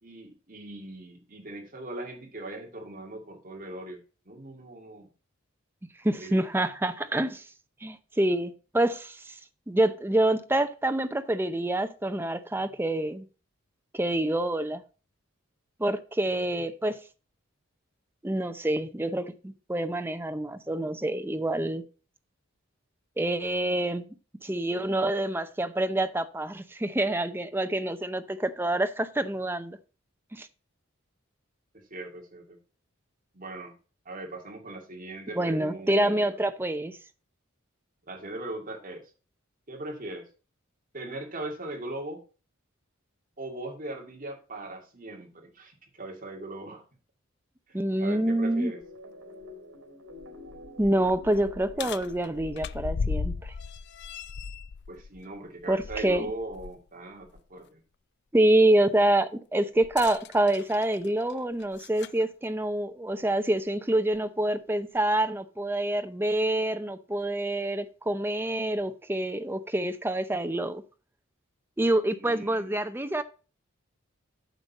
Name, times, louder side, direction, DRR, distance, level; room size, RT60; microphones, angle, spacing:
voice 1, 0.0-4.0 4.3-5.1 6.2-6.6 31.7-32.6 33.3-33.7 34.1-36.2 38.1-39.0 39.7-40.3 40.9-42.2 43.4-46.8 47.7-48.8 54.9-57.8 72.2-72.7, right 2 dB, 40° right, 2.3 m, -39 dB
voice 2, 6.0-7.4 7.8-9.4 9.7-13.2 13.9-14.8 15.8-17.0 18.2-21.8 23.2-24.1 24.4-29.8 30.3-30.5 35.3-37.0 47.7-48.7 50.8-53.5 55.7-56.3 58.3-70.8 71.8-73.2, right 1 dB, 10° right, 0.6 m, -27 dB
sound 1, 48.2-53.3, left 1 dB, 85° right, 2.3 m, -48 dB
sound 2, 48.8-48.9 49.4-49.5 50.1-56.8 57.2-57.4 59.8-62.2 63.2-63.3 64.1-64.2, left 5 dB, 55° left, 0.4 m, -37 dB
9.1 x 6.8 x 4.1 m
head